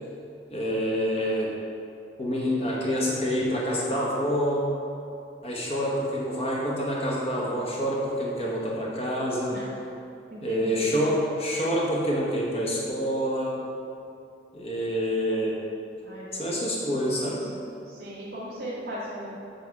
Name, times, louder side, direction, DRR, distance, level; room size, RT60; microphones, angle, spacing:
voice 1, 0.5-1.5 2.2-4.7 5.4-9.6 10.4-13.6 14.5-15.6 16.3-17.4, equal, 35° left, -4 dB, 1.0 m, -27 dB
voice 2, 10.3-11.0 16.0-19.3, equal, 60° right, -9 dB, 1.5 m, -39 dB
8.1 x 3.5 x 4.6 m, 2.7 s
head